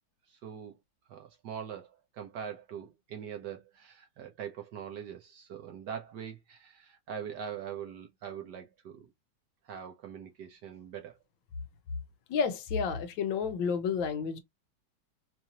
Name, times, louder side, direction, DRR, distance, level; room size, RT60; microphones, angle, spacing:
voice 1, 0.3-0.7 1.1-9.1 9.6-11.2, right 8 dB, 65° right, 1.3 m, -42 dB
voice 2, 12.3-14.4, left 6 dB, 75° left, 1.4 m, -30 dB
4.5 x 2.6 x 2.8 m
omnidirectional pair, 2.2 m